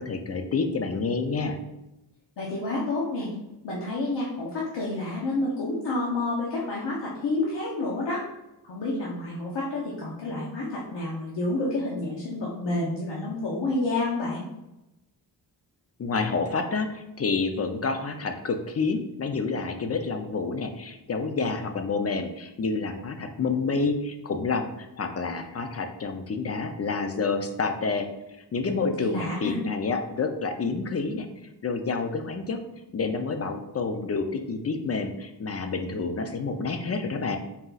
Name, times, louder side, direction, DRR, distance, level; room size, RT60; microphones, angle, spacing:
voice 1, 0.0-1.6 16.0-28.1 28.5-31.3 31.6-32.6 32.9-37.4, left 4 dB, 40° left, 6 dB, 0.4 m, -28 dB
voice 2, 2.4-3.3 3.6-8.2 8.6-14.4 29.0-29.6, left 2 dB, 80° left, -5 dB, 0.9 m, -29 dB
4.1 x 2.3 x 3.9 m, 0.93 s
wide cardioid pair, 110°, 41 cm